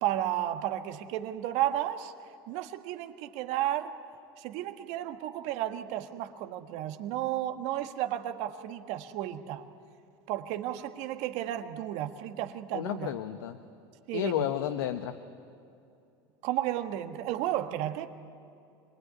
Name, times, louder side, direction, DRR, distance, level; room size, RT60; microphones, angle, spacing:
voice 1, 0.0-2.1 2.5-4.0 4.4-9.6 10.3-13.1 14.1-14.4 16.4-18.1, right 12 dB, 65° right, 7 dB, 1.6 m, -33 dB
voice 2, 12.7-13.6 14.1-15.1, left 11 dB, 80° left, 8 dB, 1.1 m, -31 dB
26.5 x 20.5 x 9.7 m, 2.6 s
hypercardioid pair, 90°, 12 cm